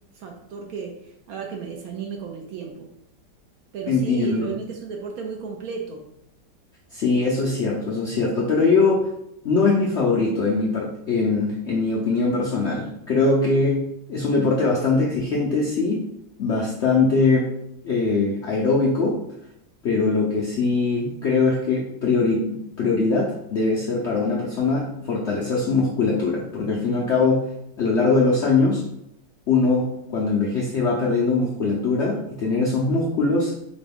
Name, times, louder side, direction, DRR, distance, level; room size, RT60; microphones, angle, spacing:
voice 1, 0.1-2.9 3.7-6.1, right 6 dB, 70° right, 2 dB, 0.9 m, -34 dB
voice 2, 3.9-4.4 6.9-9.1 9.4-16.0 16.4-17.5 17.8-19.2 19.8-27.4 27.8-28.8 29.5-33.5, left 3 dB, 70° left, -3 dB, 0.6 m, -21 dB
4.9 x 2.2 x 3.5 m, 0.78 s
omnidirectional pair, 1.8 m